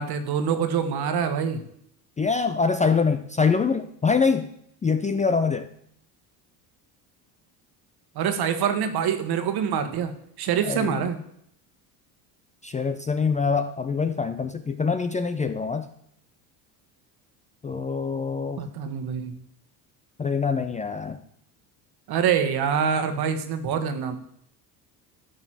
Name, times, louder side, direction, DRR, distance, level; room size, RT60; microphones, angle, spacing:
voice 1, 0.0-1.6 8.1-11.2 18.6-19.4 22.1-24.2, right 7 dB, 50° right, 9 dB, 1.5 m, -25 dB
voice 2, 2.2-4.5 4.8-5.7 10.7-11.1 12.6-15.9 17.6-18.6 20.2-21.2, left 5 dB, 15° left, 10 dB, 0.5 m, -24 dB
11.0 x 3.9 x 7.5 m, 0.69 s
hypercardioid pair, 80°, 47 cm